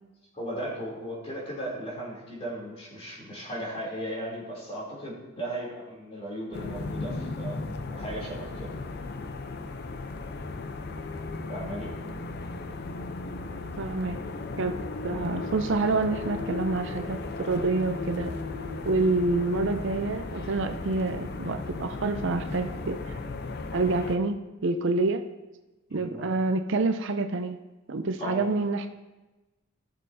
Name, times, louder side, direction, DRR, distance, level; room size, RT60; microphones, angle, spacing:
voice 1, 0.3-7.6 7.9-8.7 11.5-11.9 25.9-26.3 28.2-28.5, right 1 dB, 30° left, -5 dB, 3.0 m, -36 dB
sound 1, 6.5-24.2, left 3 dB, 55° left, 0.6 m, -36 dB
voice 2, 13.8-14.2 14.6-18.4 18.8-23.2 23.7-25.2 25.9-27.6 27.9-28.9, right 3 dB, 60° right, 7 dB, 0.6 m, -27 dB
15.5 x 6.7 x 2.7 m, 1.1 s
head